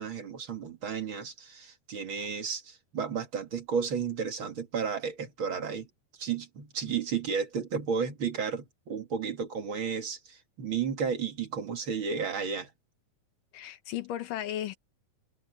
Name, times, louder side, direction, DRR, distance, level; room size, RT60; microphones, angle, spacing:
voice 1, 0.0-5.9 6.2-12.7, right 6 dB, 40° right, 2.5 m, -33 dB
voice 2, 13.5-14.8, left 12 dB, 80° left, 2.8 m, -35 dB
omnidirectional pair, 3.8 m